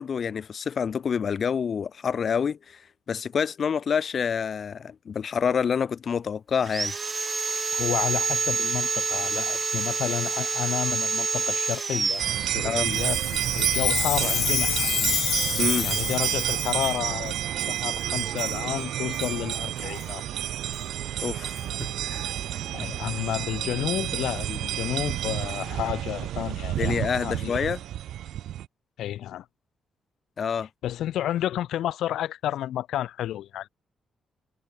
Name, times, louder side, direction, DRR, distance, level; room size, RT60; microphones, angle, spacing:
voice 1, 0.0-2.8 3.1-6.9 12.6-12.9 15.6-15.9 21.2-21.6 22.0-22.3 26.8-27.8 30.4-30.7, left 7 dB, 40° left, 1.1 m, -27 dB
Sawing, 6.6-13.1, right 4 dB, 25° right, 1.7 m, -28 dB
voice 2, 7.7-13.2 13.5-15.2 15.8-20.2 22.7-27.0 27.2-27.6 29.0-29.4 30.8-33.7, left 12 dB, 85° left, 3.1 m, -31 dB
sound 1, 12.2-28.7, right 12 dB, 90° right, 1.3 m, -29 dB
Chime, 12.9-17.0 17.6-17.7 18.4-18.6 19.1-19.3 20.0-20.1 20.7-20.8 21.6-21.7, left 9 dB, 55° left, 1.6 m, -29 dB
cardioid pair, 160°, 0 cm